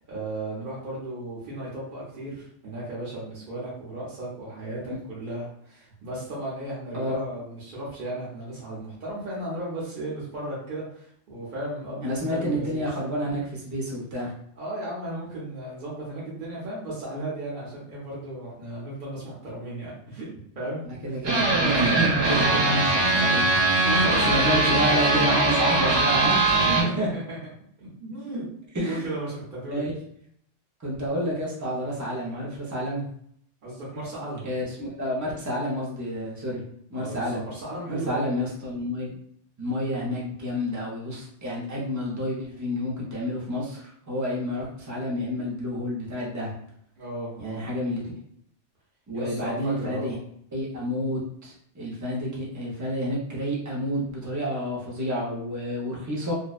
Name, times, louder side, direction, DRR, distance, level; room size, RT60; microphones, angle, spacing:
voice 1, 0.1-12.8 14.6-20.3 20.6-20.9 23.8-24.8 26.5-27.4 27.8-28.4 28.9-29.8 33.6-34.4 36.9-38.3 47.0-47.6 49.1-50.1, right 1 dB, 50° right, -7 dB, 0.8 m, -35 dB
voice 2, 12.0-14.3 20.9-23.9 24.3-26.4 26.8-27.1 28.7-29.1 29.7-30.0 30.8-33.1 34.4-36.6 36.9-37.4 37.9-39.1 39.6-46.5 47.4-48.0 49.1-50.2 50.5-56.3, equal, 30° right, -4 dB, 0.3 m, -29 dB
sound 1, 21.2-26.8, right 2 dB, 90° right, 1.1 m, -21 dB
2.6 x 2.1 x 2.3 m, 0.66 s
omnidirectional pair, 1.3 m